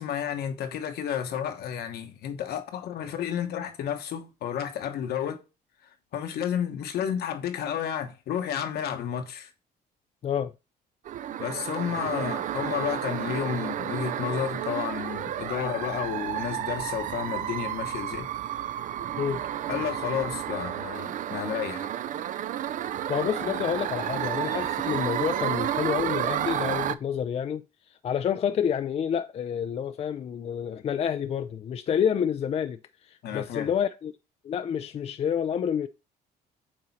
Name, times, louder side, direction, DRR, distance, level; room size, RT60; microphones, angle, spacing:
voice 1, 0.0-5.4 6.1-9.5 11.4-18.3 19.7-21.9 33.2-33.7, left 9 dB, 70° left, 1.2 m, -31 dB
sound 1, 11.1-27.0, right 11 dB, 50° right, 0.5 m, -31 dB
voice 2, 23.1-27.6 27.9-32.8 33.0-34.1 34.4-35.9, left 8 dB, 40° left, 0.4 m, -28 dB
8.8 x 3.0 x 4.1 m
cardioid pair, 110°, 17 cm